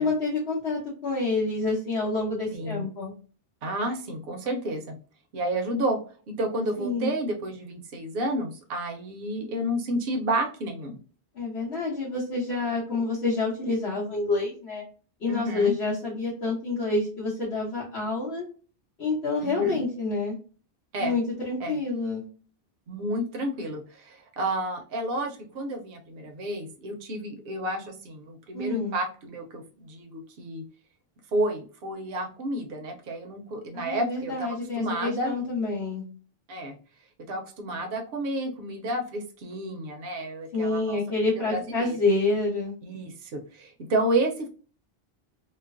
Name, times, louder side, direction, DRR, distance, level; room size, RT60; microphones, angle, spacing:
voice 1, 0.0-3.1 6.8-7.1 11.3-14.8 15.2-18.4 19.0-20.3 21.0-22.2 28.5-29.0 33.7-36.0 40.5-42.7, left 3 dB, 75° left, -8 dB, 1.3 m, -28 dB
voice 2, 2.5-2.9 3.6-5.0 5.3-6.0 6.3-11.0 15.3-15.7 19.4-19.8 20.9-21.2 21.6-21.8 22.9-30.6 31.3-35.3 36.5-36.8 37.3-41.0 41.5-42.0 42.8-44.5, right 1 dB, 65° right, 4 dB, 0.8 m, -31 dB
3.1 x 2.0 x 2.4 m, 0.37 s
omnidirectional pair, 1.1 m